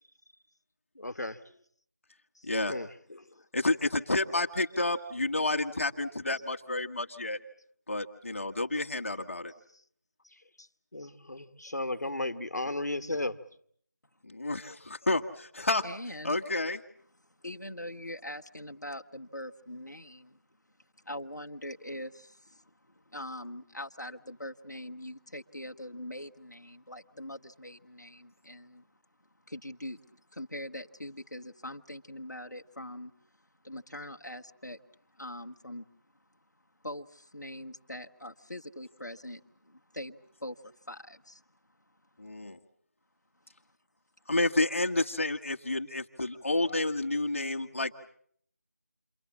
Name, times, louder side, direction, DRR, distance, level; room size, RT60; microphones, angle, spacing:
voice 1, 0.9-1.4 2.7-3.3 10.6-10.7 10.9-13.4, left 2 dB, 75° left, 1.7 m, -35 dB
voice 2, 2.4-2.7 3.5-7.4 7.9-9.5 14.2-15.8 16.2-16.8 42.2-42.6 44.3-48.0, left 2 dB, 45° left, 1.5 m, -30 dB
voice 3, 15.8-16.4 17.2-20.4 21.0-28.9 29.5-33.1 33.4-34.8 35.1-35.8 36.8-41.4, left 1 dB, 90° left, 1.5 m, -43 dB
29.0 x 23.5 x 7.3 m
figure-of-eight pair, 170°, 9 cm